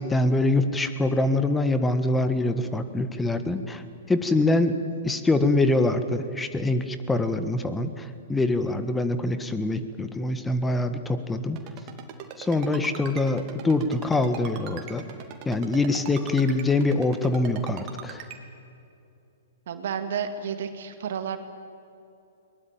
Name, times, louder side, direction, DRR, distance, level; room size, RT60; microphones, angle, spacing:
voice 1, 0.0-4.8 5.0-11.6 12.4-15.0 15.4-18.2, left 2 dB, 10° left, 10 dB, 1.6 m, -24 dB
Ringtone, 11.6-18.4, right 9 dB, 35° right, 3.1 m, -40 dB
voice 2, 19.7-21.4, right 7 dB, 60° right, 8 dB, 2.0 m, -31 dB
22.5 x 20.0 x 9.0 m, 2.7 s
figure-of-eight pair, 115°, 0 cm